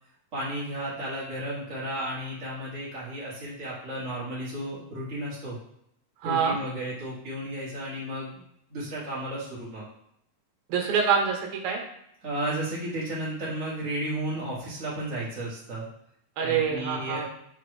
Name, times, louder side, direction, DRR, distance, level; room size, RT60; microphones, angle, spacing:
voice 1, 0.3-5.6 6.2-8.3 8.7-9.9 12.2-15.8 16.4-17.3, right 1 dB, 35° right, -8 dB, 1.5 m, -33 dB
voice 2, 6.2-6.6 10.7-11.8 16.4-17.3, right 6 dB, 75° right, 1 dB, 2.3 m, -25 dB
6.1 x 3.7 x 4.7 m, 0.74 s
omnidirectional pair, 3.5 m